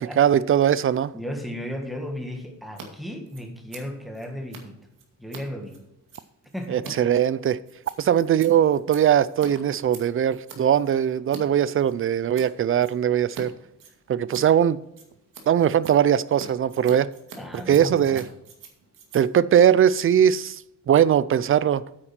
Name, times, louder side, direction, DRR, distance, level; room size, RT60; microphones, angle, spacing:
voice 1, 0.2-1.1 6.7-7.6 8.0-13.5 14.1-14.8 15.5-17.1 17.7-18.2 19.1-20.6 20.9-21.8, right 9 dB, 40° right, 18 dB, 0.4 m, -20 dB
voice 2, 1.1-4.8 5.2-5.8 6.5-7.0 17.4-18.3, equal, ahead, 3 dB, 1.7 m, -35 dB
Scissors, 2.6-2.9 3.1-11.4 11.7-12.5 12.8-13.4 13.7-20.5, right 5 dB, 80° right, 2.2 m, -45 dB
8.9 x 8.8 x 4.4 m, 0.85 s
wide cardioid pair, 150°, 32 cm